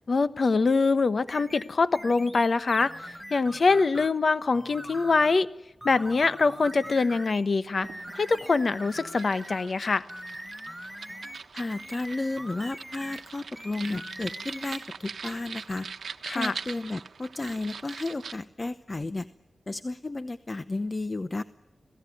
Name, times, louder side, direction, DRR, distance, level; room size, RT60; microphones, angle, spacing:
voice 1, 0.1-5.5 5.8-7.9 8.1-10.1 16.3-16.5, left 4 dB, 60° left, 12 dB, 1.1 m, -24 dB
sound 1, 1.3-4.2 4.5-5.4 5.8-7.5 7.8-9.7 10.1-13.3 13.6-14.9 15.2-15.3, equal, ahead, 1.2 m, -42 dB
sound 2, 7.8-18.4, right 5 dB, 80° right, 1.1 m, -42 dB
voice 2, 11.5-15.9 16.3-19.3 19.7-21.4, left 2 dB, 35° left, 12 dB, 0.8 m, -33 dB
26.5 x 18.0 x 9.4 m, 0.97 s
cardioid pair, 60°, 0 cm